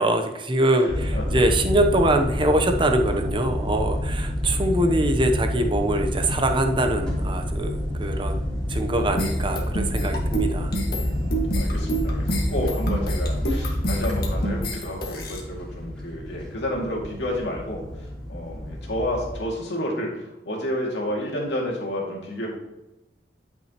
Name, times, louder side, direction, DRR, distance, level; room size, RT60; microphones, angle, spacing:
voice 1, 0.0-11.1, right 1 dB, 30° right, 5 dB, 0.8 m, -23 dB
voice 2, 0.8-1.4 11.1-22.5, left 1 dB, 75° left, -2 dB, 2.3 m, -30 dB
sound 1, 0.9-19.4, equal, 5° left, 2.8 m, -28 dB
sound 2, 9.2-15.4, right 1 dB, 55° left, 1.6 m, -29 dB
11.0 x 6.1 x 2.9 m, 0.96 s
head